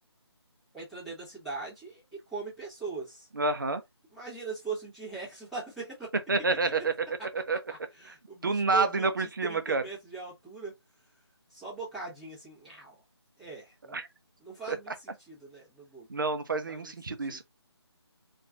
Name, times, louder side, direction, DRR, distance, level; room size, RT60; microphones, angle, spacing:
voice 1, 0.7-3.3 4.1-6.1 7.7-10.7 11.5-13.0 13.4-14.0 14.4-16.1 16.7-17.4, right 4 dB, ahead, 1.1 m, -41 dB
voice 2, 3.3-3.8 6.3-7.6 8.1-8.2 8.4-9.8 13.9-14.1 14.7-14.8 16.1-17.4, right 3 dB, 50° right, 0.7 m, -28 dB
4.3 x 2.6 x 2.5 m
figure-of-eight pair, 155°, 14 cm